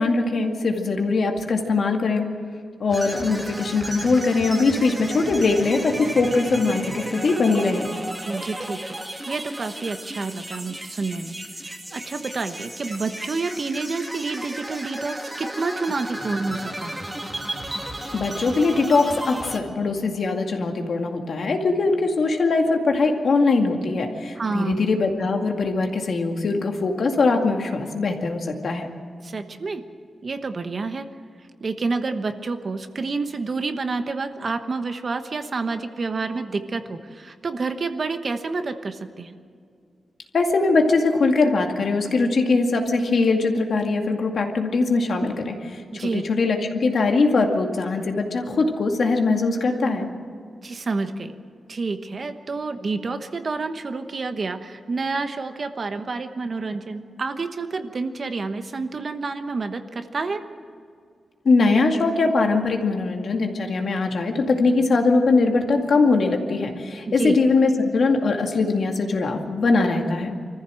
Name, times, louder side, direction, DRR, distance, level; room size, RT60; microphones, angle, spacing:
voice 1, 0.0-2.3 2.8-7.9 18.1-28.9 40.3-50.1 61.4-70.4, left 3 dB, 60° left, 3 dB, 2.2 m, -21 dB
sound 1, 2.9-19.6, right 1 dB, 15° right, 2.0 m, -34 dB
voice 2, 8.2-17.0 24.4-24.8 29.2-29.8 30.2-31.1 31.6-39.4 45.9-46.2 50.6-51.3 51.7-60.4 67.1-67.4, right 3 dB, 40° right, 8 dB, 1.1 m, -29 dB
25.0 x 14.5 x 7.7 m, 2.3 s
wide cardioid pair, 145°, 0 cm